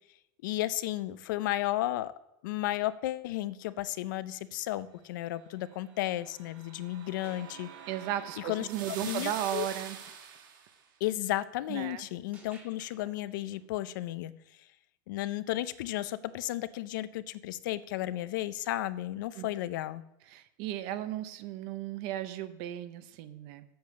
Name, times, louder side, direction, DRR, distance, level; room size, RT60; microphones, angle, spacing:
voice 1, 0.4-2.1 2.4-7.7 8.4-9.7 11.0-14.3 15.1-20.0, left 15 dB, 75° left, 15 dB, 0.5 m, -33 dB
sound 1, 6.1-10.7, right 7 dB, 85° right, 1.5 m, -45 dB
sound 2, 7.2-9.1 9.5-9.7 12.3-14.2 15.9-16.0 20.4-20.5, right 2 dB, 15° right, 1.7 m, -58 dB
voice 2, 7.9-10.0 11.7-12.0 19.3-19.5 20.3-23.6, right 12 dB, 50° right, 12 dB, 0.7 m, -35 dB
8.0 x 6.9 x 6.5 m, 0.86 s
supercardioid pair, 165°, 11 cm